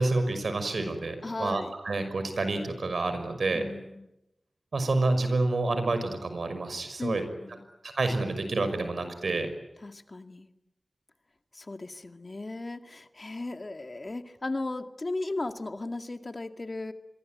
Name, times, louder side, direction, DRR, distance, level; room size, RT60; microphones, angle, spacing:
voice 1, 0.0-3.6 4.7-7.2 7.8-9.5, right 2 dB, 85° right, 9 dB, 5.8 m, -28 dB
voice 2, 1.2-1.7 3.5-4.1 7.0-7.7 9.8-10.5 11.5-16.9, left 2 dB, 45° left, 7 dB, 2.0 m, -36 dB
27.0 x 23.0 x 9.4 m, 0.88 s
wide cardioid pair, 70°, 0 cm